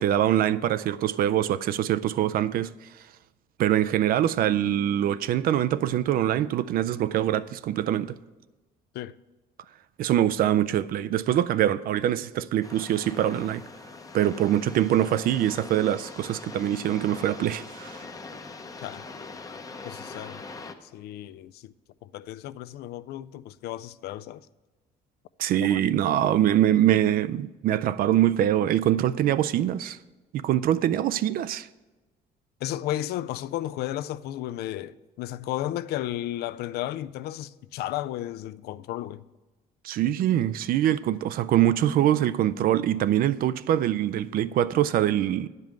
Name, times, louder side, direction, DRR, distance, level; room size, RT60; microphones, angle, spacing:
voice 1, 0.0-2.9 3.6-8.1 10.0-13.6 14.1-18.0 25.4-30.0 30.3-31.7 39.8-45.5, right 11 dB, 60° right, 0.4 m, -24 dB
sound 1, 12.6-20.7, left 3 dB, 20° left, 0.7 m, -42 dB
voice 2, 19.8-20.4 20.8-21.7 22.0-24.5 25.5-25.8 32.6-39.3, left 13 dB, 70° left, 0.4 m, -33 dB
9.3 x 5.3 x 7.5 m
cardioid pair, 110°, 17 cm